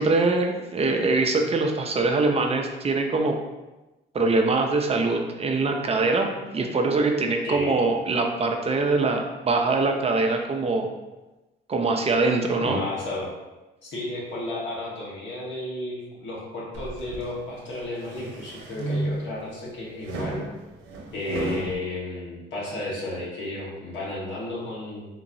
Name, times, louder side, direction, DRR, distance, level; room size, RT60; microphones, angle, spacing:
voice 1, 0.0-3.4 4.1-10.9 11.7-12.8, right 3 dB, 30° right, 3 dB, 0.5 m, -23 dB
voice 2, 7.4-7.8 12.6-13.3 13.8-20.4 21.1-25.1, left 2 dB, 70° left, -5 dB, 1.3 m, -33 dB
sound 1, 16.7-17.3 17.8-19.4 20.0-21.7, right 1 dB, 85° right, 0.7 m, -32 dB
3.7 x 2.9 x 2.6 m, 1.1 s
cardioid pair, 90°, 20 cm